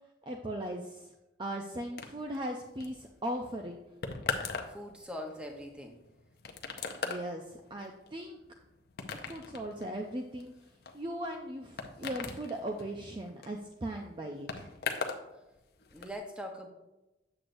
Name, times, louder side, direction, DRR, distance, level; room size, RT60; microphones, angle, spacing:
voice 1, 0.2-1.1 1.4-3.8 7.0-8.4 9.2-10.5 10.9-14.7, right 1 dB, 25° right, 2 dB, 0.4 m, -38 dB
sound 1, 2.0-15.3 15.5-16.2, left 5 dB, 55° left, 0.6 m, -40 dB
voice 2, 4.7-6.0 15.9-16.7, equal, 5° right, 2 dB, 0.8 m, -42 dB
7.8 x 7.8 x 2.6 m, 0.99 s
head